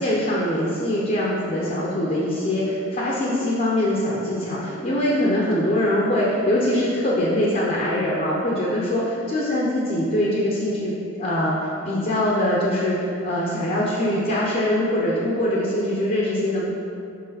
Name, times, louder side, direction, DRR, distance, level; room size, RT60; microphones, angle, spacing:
voice 1, 0.0-10.9 11.2-16.7, left 1 dB, 45° left, -5 dB, 0.9 m, -23 dB
6.7 x 4.7 x 4.0 m, 2.7 s
head